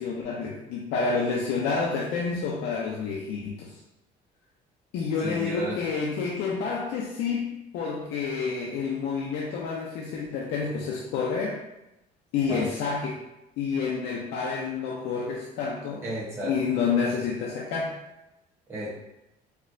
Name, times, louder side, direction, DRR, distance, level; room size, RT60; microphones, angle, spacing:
voice 1, 0.0-3.8 4.9-11.6 12.3-13.2 13.6-16.0 16.4-18.0, left 5 dB, 85° left, -2 dB, 0.4 m, -29 dB
voice 2, 5.2-5.8 12.5-12.7 16.0-16.5 18.7-18.9, right 1 dB, 15° right, -8 dB, 0.9 m, -32 dB
4.3 x 2.1 x 2.5 m, 0.90 s
cardioid pair, 110°, 17 cm